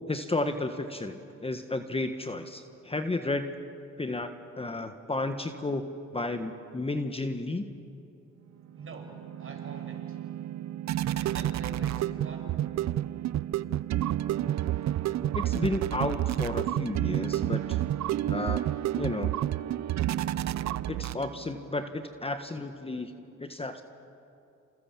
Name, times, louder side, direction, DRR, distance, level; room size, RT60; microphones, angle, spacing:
voice 1, 0.1-3.5 4.0-4.3 4.6-7.7 15.3-17.8 18.3-18.6 19.0-19.3 20.9-23.1 23.4-23.8, left 2 dB, 20° left, 7 dB, 1.5 m, -32 dB
voice 2, 8.7-10.2 11.1-12.6, right 3 dB, 45° right, 2 dB, 6.4 m, -45 dB
sound 1, 8.7-21.6, right 13 dB, 65° right, 0.7 m, -30 dB
28.5 x 28.0 x 7.4 m, 2.7 s
cardioid pair, 90°, 30 cm